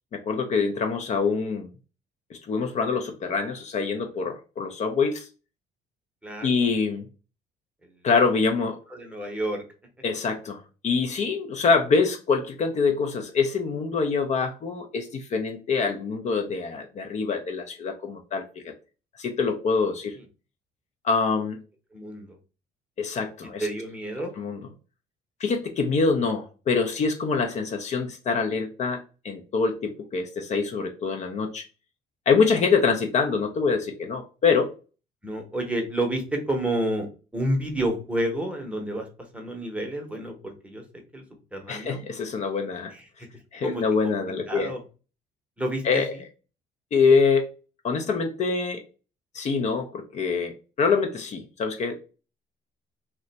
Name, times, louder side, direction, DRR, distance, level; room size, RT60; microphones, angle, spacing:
voice 1, 0.1-1.7 2.3-5.3 6.4-7.0 8.0-8.8 10.0-18.7 19.2-20.2 21.0-21.6 23.0-23.7 24.4-24.6 25.4-31.6 32.3-34.7 41.7-42.9 43.5-44.7 45.8-46.1 46.9-47.5 47.8-48.8 49.3-52.0, left 5 dB, 45° left, 0.5 m, -25 dB
voice 2, 6.2-6.7 8.9-9.6 20.2-20.3 21.9-22.4 23.6-24.3 35.2-39.1 39.3-40.8 41.1-41.2 41.5-42.0 42.9-43.0 43.6-44.1 44.5-44.8 45.6-46.2, right 1 dB, 5° right, 0.8 m, -30 dB
2.5 x 2.1 x 3.9 m
cardioid pair, 110°, 17 cm